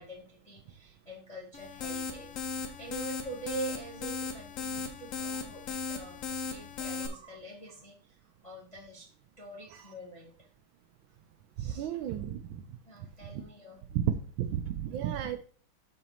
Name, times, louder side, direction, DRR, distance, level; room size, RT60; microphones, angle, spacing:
voice 1, 0.0-9.1 9.4-10.5 11.6-11.9 12.2-12.3 12.9-13.8, right 2 dB, 30° left, -2 dB, 0.7 m, -45 dB
sound 1, 1.5-7.1, left 4 dB, 70° left, 0.7 m, -37 dB
voice 2, 11.6-12.4 13.3-13.4 13.9-14.0 14.4-15.4, right 10 dB, 75° right, 10 dB, 1.2 m, -33 dB
11.5 x 4.1 x 2.9 m, 0.43 s
omnidirectional pair, 2.4 m